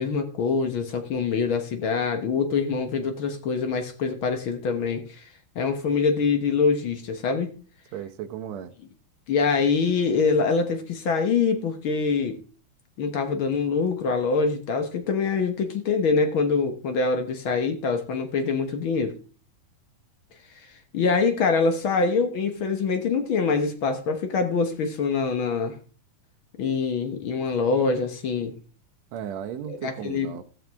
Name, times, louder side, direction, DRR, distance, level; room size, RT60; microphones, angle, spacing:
voice 1, 0.0-5.2 5.5-7.5 9.3-12.4 13.0-19.1 20.9-25.7 26.6-28.5 29.7-30.4, left 5 dB, 55° left, 1.5 m, -24 dB
voice 2, 7.9-8.7 29.1-30.4, right 9 dB, 65° right, 2.0 m, -35 dB
18.0 x 6.3 x 3.5 m
omnidirectional pair, 3.6 m